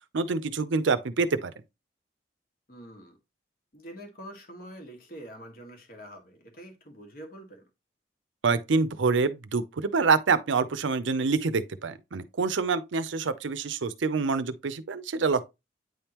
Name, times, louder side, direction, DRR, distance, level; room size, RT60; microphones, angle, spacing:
voice 1, 0.1-1.5 8.4-15.5, right 4 dB, 85° right, 0.6 m, -26 dB
voice 2, 2.7-3.2 3.7-7.7, equal, 50° left, 1.5 m, -45 dB
9.2 x 3.5 x 2.9 m
head